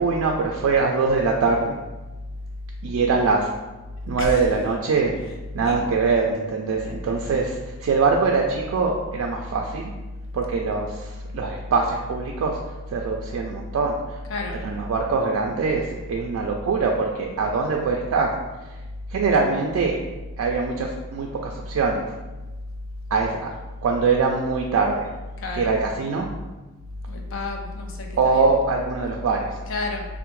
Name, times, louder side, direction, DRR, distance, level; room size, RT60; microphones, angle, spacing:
voice 1, 0.0-1.8 2.8-3.5 4.1-5.2 5.5-9.9 10.3-12.6 12.9-14.2 14.6-18.4 19.1-20.0 20.4-22.1 23.1-23.5 23.8-25.1 25.5-26.3 28.2-29.6, right 4 dB, 75° right, 1 dB, 0.3 m, -23 dB
voice 2, 6.8-7.2 14.3-14.6 25.4-25.7 27.1-28.5 29.7-30.1, left 2 dB, 65° left, 1 dB, 0.5 m, -31 dB
3.3 x 2.0 x 3.0 m, 1.1 s
head